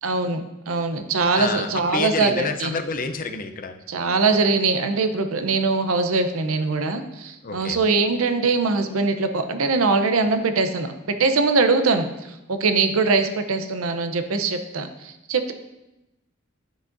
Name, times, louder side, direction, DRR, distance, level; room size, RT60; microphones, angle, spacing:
voice 1, 0.0-2.8 3.9-15.5, right 4 dB, 80° right, 8 dB, 0.7 m, -22 dB
voice 2, 1.3-3.8 7.4-7.8, left 4 dB, 40° left, 7 dB, 0.5 m, -28 dB
10.0 x 6.1 x 2.6 m, 0.95 s
head